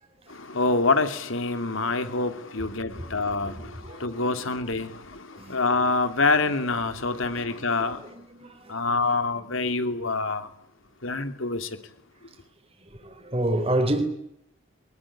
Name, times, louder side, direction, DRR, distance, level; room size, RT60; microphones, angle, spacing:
voice 1, 0.4-3.6 4.0-5.2 5.5-8.0 8.7-10.5 11.0-11.7, left 3 dB, 75° left, 2.8 m, -26 dB
voice 2, 3.4-4.5 5.3-5.6 7.1-9.2 12.8-14.0, right 1 dB, 30° right, 3.6 m, -31 dB
23.5 x 20.5 x 9.9 m
head